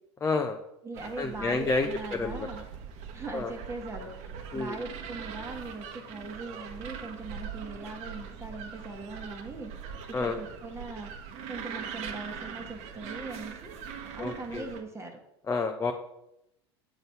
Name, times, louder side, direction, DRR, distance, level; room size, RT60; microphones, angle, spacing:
voice 1, 0.2-0.6 1.2-2.5 3.3-3.5 4.5-4.8 10.1-10.4 14.2-14.7 15.5-15.9, left 3 dB, 20° left, 5 dB, 0.6 m, -29 dB
voice 2, 0.8-2.6 3.1-4.1 4.5-9.7 10.2-11.1 11.5-13.8 14.1-15.2, right 3 dB, 20° right, 2 dB, 1.2 m, -40 dB
sound 1, 0.9-14.8, right 7 dB, 50° right, 1.0 m, -42 dB
7.6 x 4.0 x 5.6 m, 0.84 s
hypercardioid pair, 80°, 14 cm